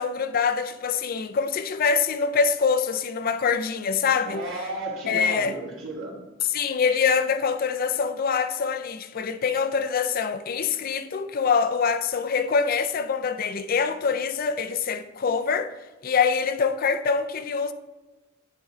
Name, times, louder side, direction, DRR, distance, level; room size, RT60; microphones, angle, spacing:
voice 1, 0.0-4.4 5.1-5.5 6.5-15.7 16.0-17.7, left 5 dB, 45° left, 0.4 m, -24 dB
voice 2, 4.2-6.3, right 1 dB, 85° right, 1.4 m, -33 dB
9.5 x 4.4 x 3.8 m
head